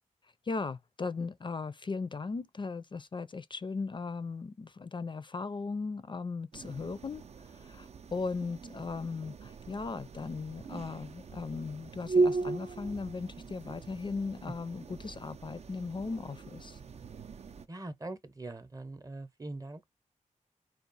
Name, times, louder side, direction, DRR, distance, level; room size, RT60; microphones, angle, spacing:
voice 1, 0.4-16.8, left 4 dB, 40° left, 0.4 m, -38 dB
sound 1, 6.5-17.7, right 3 dB, 55° right, 0.5 m, -37 dB
voice 2, 17.7-19.9, right 2 dB, 25° right, 0.8 m, -42 dB
4.6 x 2.4 x 3.9 m
wide cardioid pair, 95°, 13 cm